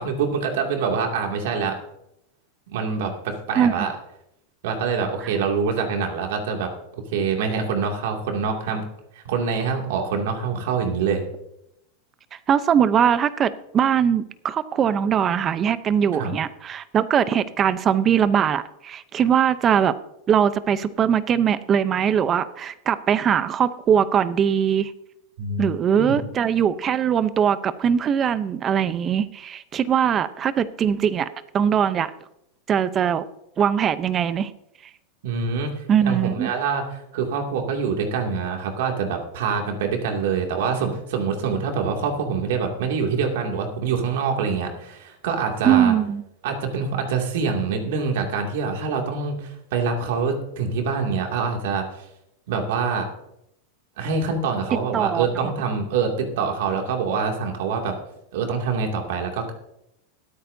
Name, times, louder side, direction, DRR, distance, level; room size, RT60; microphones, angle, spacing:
voice 1, 0.0-1.8 2.7-3.9 4.6-6.7 7.1-8.8 9.1-11.2 16.2-16.3 25.4-25.7 26.0-26.2 35.2-45.9 46.4-52.0 52.5-53.1 54.0-58.0 58.3-59.5, right 5 dB, 70° right, 2 dB, 2.5 m, -25 dB
voice 2, 12.5-19.9 20.3-24.9 25.6-31.3 31.5-32.1 32.7-33.2 33.6-34.5 35.9-36.5 45.6-46.2 54.9-55.5, right 8 dB, 30° right, 14 dB, 0.7 m, -21 dB
22.5 x 8.7 x 2.7 m, 0.82 s
supercardioid pair, 130°, 0 cm